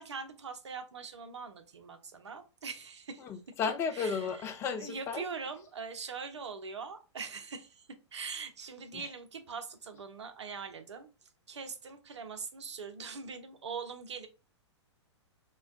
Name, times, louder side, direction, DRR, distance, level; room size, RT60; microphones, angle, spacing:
voice 1, 0.0-3.2 3.9-4.4 4.8-11.1 11.5-14.3, right 5 dB, 70° right, 0.6 m, -42 dB
voice 2, 3.2-5.2 8.9-9.1, left 5 dB, 15° left, 0.3 m, -34 dB
3.2 x 2.2 x 2.4 m
figure-of-eight pair, 110°, 15 cm